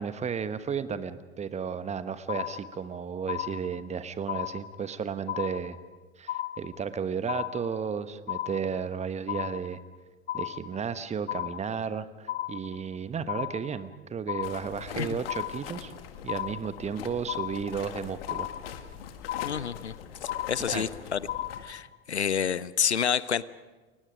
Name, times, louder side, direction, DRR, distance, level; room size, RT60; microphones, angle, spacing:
voice 1, 0.0-5.8 6.2-9.8 10.3-15.9 16.2-18.5 20.7-20.9, right 6 dB, 20° right, 13 dB, 1.2 m, -33 dB
sound 1, 2.3-2.9 3.3-3.9 4.3-4.9 5.3-5.9 6.3-6.9 7.3-7.9 8.3-8.9 9.3-9.9 10.3-10.9 11.3-11.9 12.3-12.9 13.3-13.9 14.3-14.9 15.3-15.9 16.3-16.9 17.3-17.9 18.3-18.9 19.3-19.9 20.3-20.9 21.3-21.9, left 13 dB, 25° left, 0.8 m, -35 dB
sound 2, 14.4-21.6, left 8 dB, 60° left, 2.0 m, -42 dB
voice 2, 19.4-19.9 20.2-21.2 21.6-23.4, left 8 dB, 80° left, 19 dB, 0.7 m, -29 dB
30.0 x 22.0 x 5.1 m, 1.2 s
figure-of-eight pair, 80°, 33 cm